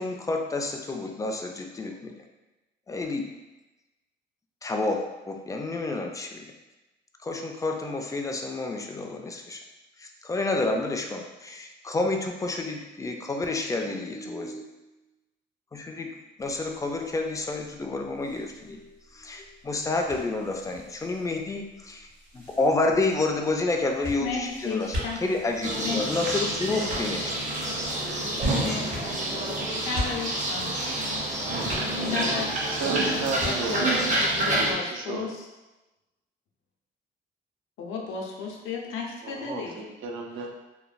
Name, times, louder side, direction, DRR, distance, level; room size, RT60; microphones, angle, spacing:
voice 1, 0.0-2.1 2.9-3.2 4.6-5.0 5.3-6.5 7.2-9.6 10.0-14.6 15.7-16.1 16.4-18.9 19.1-22.1 22.3-27.3, left 2 dB, 15° left, 3 dB, 0.3 m, -29 dB
sound 1, 16.4-34.6, equal, 65° right, 1.3 m, -41 dB
voice 2, 24.2-25.2 25.8-26.1 28.6-30.7 32.0-32.5 33.0-33.9 34.2-35.5 37.8-39.8 40.4-40.5, left 5 dB, 75° left, 0 dB, 0.6 m, -34 dB
sound 2, 25.6-34.7, right 1 dB, 40° right, 0.6 m, -28 dB
voice 3, 29.4-29.8 32.7-33.9 34.4-35.3 39.2-40.5, right 4 dB, 80° right, 1 dB, 0.5 m, -34 dB
3.0 x 2.1 x 2.4 m, 1.1 s
cardioid pair, 90°, 20 cm